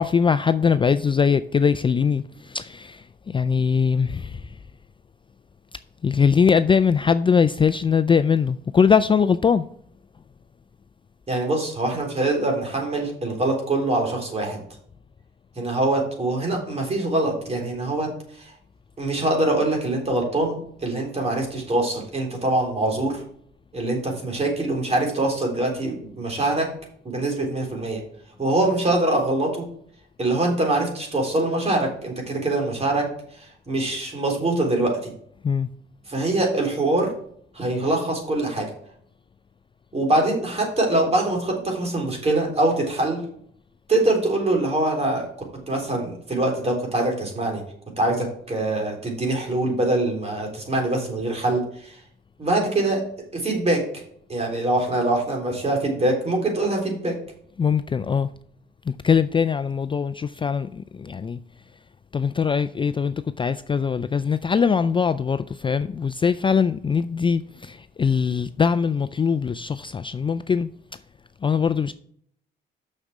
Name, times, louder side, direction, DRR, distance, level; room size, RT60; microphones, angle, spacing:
voice 1, 0.0-4.6 6.0-9.7 35.4-35.7 57.6-58.3 58.9-61.4 62.1-70.7 71.4-71.9, left 6 dB, 25° left, 0.4 m, -21 dB
voice 2, 11.3-14.6 15.6-18.1 18.4-18.5 19.0-23.2 23.7-26.7 27.0-28.0 28.4-29.7 30.2-33.1 33.7-35.1 36.1-37.1 37.5-38.7 39.9-43.2 43.9-45.3 45.7-47.6 48.0-52.0 52.4-53.0 53.3-53.8 54.3-57.1, right 2 dB, 30° right, 3.8 m, -23 dB
6.5 x 6.5 x 6.1 m
cardioid pair, 90°, 20 cm